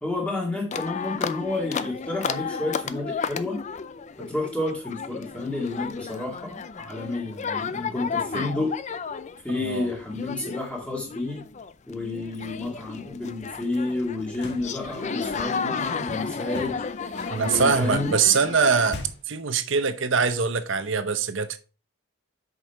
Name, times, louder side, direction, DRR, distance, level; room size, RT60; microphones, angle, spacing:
voice 1, 0.0-3.6 4.2-8.8 9.4-11.4 11.9-16.8 17.4-18.2, left 2 dB, 5° left, 2.0 m, -30 dB
sound 1, 0.7-18.9, left 5 dB, 35° left, 0.4 m, -33 dB
voice 2, 9.5-9.9 17.3-19.0 19.3-21.6, right 5 dB, 60° right, 0.7 m, -23 dB
sound 2, 14.2-14.7 16.5-17.9 18.9-19.4, left 2 dB, 50° left, 1.3 m, -39 dB
6.3 x 5.2 x 4.5 m
head